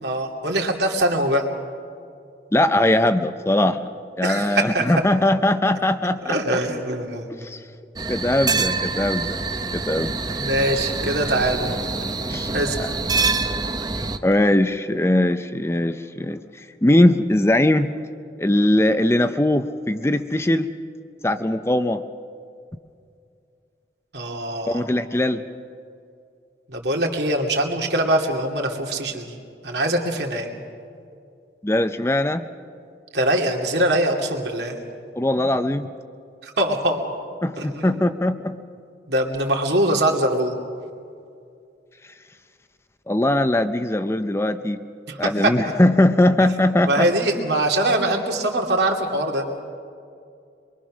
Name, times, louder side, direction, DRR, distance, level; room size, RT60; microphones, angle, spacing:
voice 1, 0.0-1.5 4.2-4.9 6.3-7.3 8.5-8.6 10.3-11.7 12.5-12.9 24.1-24.8 26.7-29.4 29.6-30.5 33.1-34.8 36.4-37.0 37.6-38.1 39.1-40.5 45.1-45.5 46.8-49.5, right 1 dB, 75° right, 1 dB, 2.5 m, -23 dB
voice 2, 2.5-3.9 4.2-6.4 7.4-7.6 8.1-9.4 9.7-10.2 12.3-12.5 12.8-12.9 14.2-17.9 18.4-20.7 21.2-22.0 24.7-25.4 31.6-32.4 35.2-35.9 37.4-38.6 43.1-44.8 45.2-47.1, left 1 dB, 15° left, 9 dB, 0.5 m, -20 dB
sound 1, 8.0-14.2, right 3 dB, 20° right, 0.7 m, -26 dB
24.0 x 23.5 x 6.2 m, 2.4 s
head